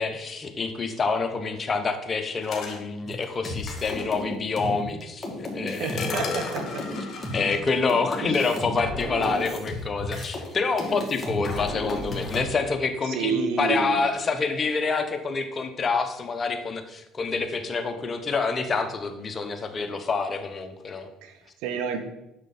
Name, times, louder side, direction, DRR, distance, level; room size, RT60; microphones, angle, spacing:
voice 1, 0.0-6.5 7.3-21.1, left 4 dB, 35° left, 7 dB, 1.1 m, -27 dB
sound 1, 2.4-2.8 4.0-4.1 4.6-4.7 6.0-7.6, left 5 dB, 50° left, 2.0 m, -36 dB
sound 2, 3.1-10.5 10.8-12.4, left 2 dB, 20° left, 2.7 m, -32 dB
voice 2, 5.7-6.6 8.2-8.4 13.1-14.0 21.2-22.0, right 6 dB, 75° right, 7 dB, 1.1 m, -29 dB
8.1 x 6.8 x 4.3 m, 0.90 s
supercardioid pair, 80°, 0 cm